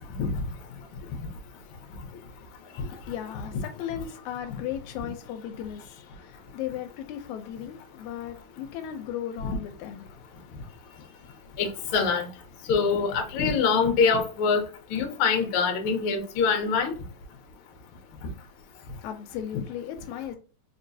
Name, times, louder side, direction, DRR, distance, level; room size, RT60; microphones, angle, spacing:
voice 1, 2.9-10.3 10.7-11.6 18.9-20.4, left 10 dB, 80° left, 1.9 m, -37 dB
voice 2, 11.6-12.3 12.7-14.6 14.9-16.9, left 5 dB, 65° left, 1.4 m, -24 dB
4.6 x 3.0 x 2.6 m
omnidirectional pair, 3.4 m